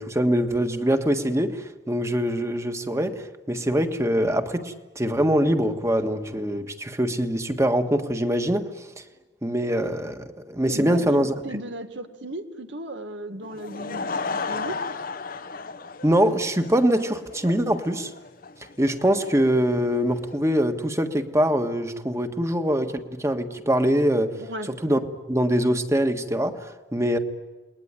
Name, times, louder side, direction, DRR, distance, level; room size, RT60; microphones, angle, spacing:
voice 1, 0.0-8.7 9.4-11.3 16.0-18.1 18.8-24.3 24.7-25.0 25.3-27.2, equal, 15° right, 7 dB, 1.6 m, -23 dB
voice 2, 10.7-14.8 24.4-24.7, right 1 dB, 75° right, 6 dB, 2.1 m, -36 dB
Laughter / Crowd, 13.4-20.4, left 4 dB, 50° left, 1.0 m, -34 dB
29.0 x 21.0 x 9.8 m, 1.2 s
head